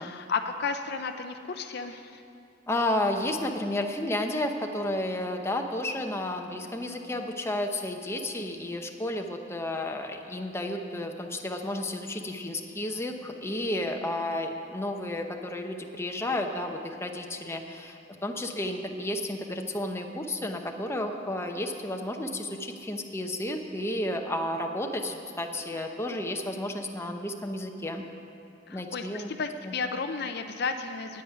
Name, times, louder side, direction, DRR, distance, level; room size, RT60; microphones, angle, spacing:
voice 1, 0.0-2.2 28.7-31.2, left 5 dB, 60° left, 7 dB, 0.6 m, -33 dB
voice 2, 2.7-28.0 28.7-29.3 29.6-29.7, left 1 dB, 15° left, 3 dB, 0.8 m, -32 dB
9.3 x 8.8 x 9.7 m, 2.5 s
head